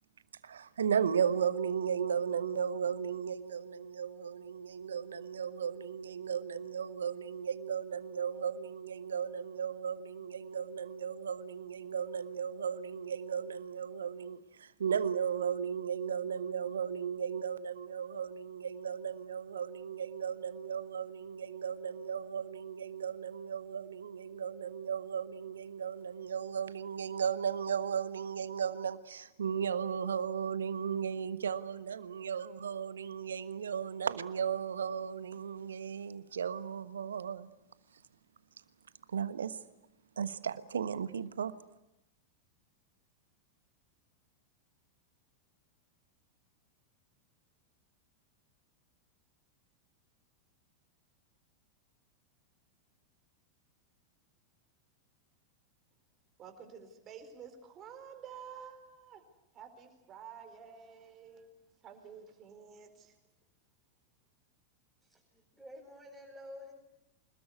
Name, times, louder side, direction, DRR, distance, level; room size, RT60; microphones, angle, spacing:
voice 1, 0.4-37.5 39.1-39.6 40.2-41.5, right 7 dB, 70° right, 1.2 m, -35 dB
voice 2, 56.4-59.2 59.5-61.5 61.8-63.1, right 7 dB, 30° right, 4.5 m, -50 dB
voice 3, 65.0-66.7, left 1 dB, 5° right, 5.2 m, -50 dB
26.5 x 20.0 x 8.4 m
figure-of-eight pair, 90°, 0 cm